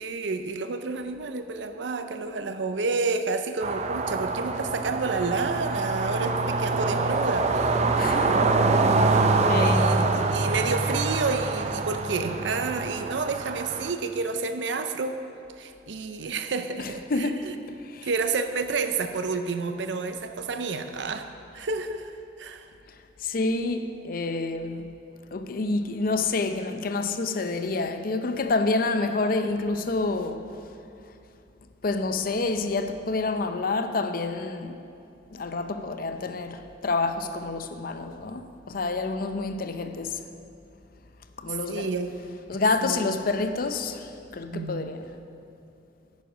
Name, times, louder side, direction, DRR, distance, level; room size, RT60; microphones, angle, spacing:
voice 1, 0.0-7.8 9.5-15.2 15.6-21.3 21.5-22.1 22.4-22.7 24.8-24.9 41.5-42.1 42.5-43.1 44.5-44.9, right 4 dB, 80° right, 0.6 m, -30 dB
sound 1, 3.6-13.9, right 3 dB, 40° right, 0.5 m, -25 dB
voice 2, 8.0-8.5 9.1-9.9 17.1-17.5 17.9-18.1 23.2-25.0 25.3-30.5 31.8-34.8 35.3-40.2 41.4-41.9 42.5-45.1, left 3 dB, 50° left, 0.6 m, -28 dB
10.0 x 9.2 x 5.1 m
head